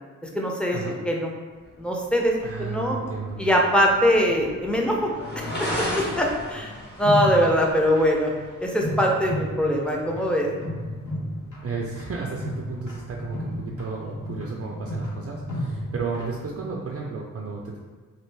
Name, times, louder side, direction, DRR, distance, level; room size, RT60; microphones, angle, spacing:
voice 1, 0.3-0.8 1.0-1.3 1.8-3.0 3.4-5.1 5.4-5.7 6.0-6.7 7.0-8.3 8.6-10.5, equal, 5° left, -1 dB, 0.6 m, -22 dB
sound 1, 1.5-16.1, left 1 dB, 30° left, 1.0 m, -39 dB
voice 2, 2.4-3.5 11.6-17.8, right 4 dB, 45° right, -2 dB, 0.5 m, -33 dB
sound 2, 5.6-6.3 7.0-8.1 8.8-16.7, equal, 60° left, 1.0 m, -33 dB
3.2 x 2.5 x 3.3 m, 1.5 s
cardioid pair, 60°, 33 cm